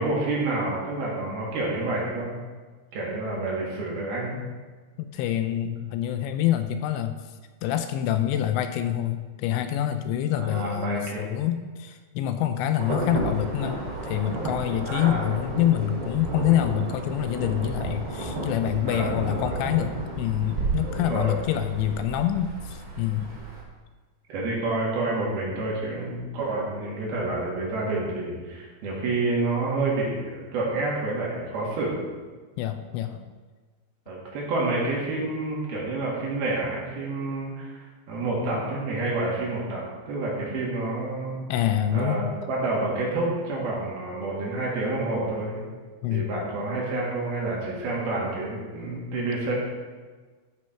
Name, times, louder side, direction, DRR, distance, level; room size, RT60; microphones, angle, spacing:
voice 1, 0.0-2.3 2.9-4.4 10.4-11.3 14.8-15.3 18.8-19.9 20.8-21.4 24.3-32.0 34.1-41.5 41.9-45.6 46.1-49.5, right 2 dB, 60° right, -4 dB, 3.6 m, -29 dB
voice 2, 5.0-7.2 7.6-19.9 20.2-23.3 32.6-33.3 41.5-42.3 46.0-46.3, left 11 dB, 85° left, 8 dB, 2.8 m, -26 dB
Insect / Thunder / Rain, 12.8-23.6, right 2 dB, 40° right, 2.0 m, -32 dB
13.0 x 6.2 x 4.5 m, 1.4 s
omnidirectional pair, 5.3 m